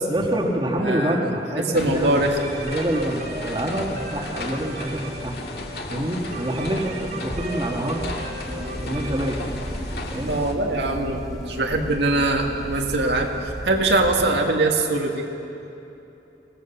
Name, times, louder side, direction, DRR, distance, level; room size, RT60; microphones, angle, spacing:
voice 1, 0.1-2.2 2.6-5.4 5.8-8.1 8.8-9.4 10.1-10.3, right 1 dB, 25° right, 0 dB, 1.8 m, -26 dB
voice 2, 0.8-1.3 1.6-2.5 10.3-13.3 13.6-15.2, right 2 dB, 75° right, 1 dB, 1.9 m, -22 dB
sound 1, 1.7-10.5, left 1 dB, 60° left, 2.0 m, -34 dB
sound 2, 2.3-12.0, right 2 dB, 50° right, 2.0 m, -38 dB
sound 3, 8.4-14.3, equal, ahead, 2.2 m, -34 dB
25.0 x 17.5 x 7.1 m, 2.9 s
head